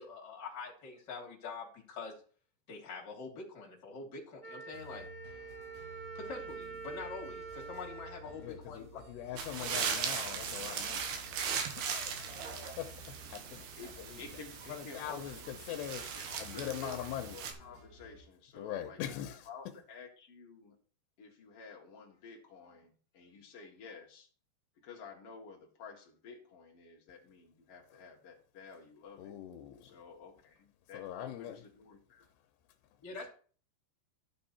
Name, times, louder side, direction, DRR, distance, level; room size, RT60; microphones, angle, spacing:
voice 1, 0.0-2.2 2.7-5.1 6.1-9.0 9.6-9.7 33.0-33.3, left 4 dB, 30° left, 2.8 m, -45 dB
Wind instrument woodwind instrument, 4.4-9.2, right 5 dB, 5° left, 4.8 m, -47 dB
sound 1, 4.7-18.2, equal, 80° right, 6.7 m, -54 dB
voice 2, 8.4-11.1 11.7-13.7 14.0-14.3 14.7-16.1 16.4-17.4 18.6-19.5 29.2-30.0 30.9-31.6, left 11 dB, 80° left, 2.9 m, -42 dB
sound 2, 9.4-17.5, right 6 dB, 65° right, 3.0 m, -39 dB
voice 3, 13.8-15.5 16.1-19.0 19.4-20.8 21.2-24.3 24.8-29.4 29.8-32.3, left 4 dB, 50° left, 1.9 m, -51 dB
14.0 x 6.6 x 4.2 m
omnidirectional pair, 5.1 m